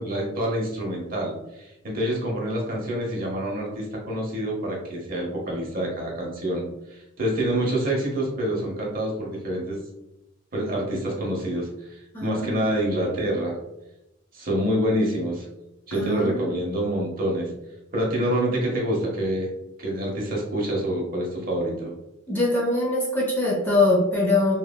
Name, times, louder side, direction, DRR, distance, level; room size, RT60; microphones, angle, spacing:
voice 1, 0.0-6.6 6.9-9.8 10.5-13.6 14.3-15.5 15.9-17.5 17.9-19.5 19.8-21.9, right 1 dB, 50° right, -2 dB, 0.8 m, -27 dB
voice 2, 12.1-12.6 15.9-16.6 22.3-24.6, left 2 dB, 10° left, -4 dB, 0.6 m, -23 dB
3.1 x 2.1 x 2.2 m, 0.90 s
head